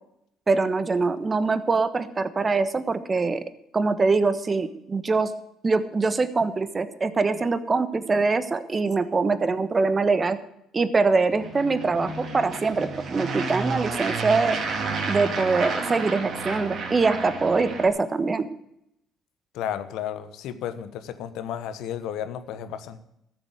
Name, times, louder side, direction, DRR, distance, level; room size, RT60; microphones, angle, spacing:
voice 1, 0.5-3.4 3.7-5.3 5.6-10.4 10.7-14.6 15.1-18.5, right 4 dB, 35° right, 12 dB, 1.3 m, -23 dB
sound 1, 11.3-17.9, right 4 dB, 55° right, 2.8 m, -31 dB
voice 2, 19.5-23.0, left 9 dB, 70° left, 11 dB, 1.1 m, -33 dB
13.5 x 7.7 x 8.1 m, 0.78 s
hypercardioid pair, 55°, 0 cm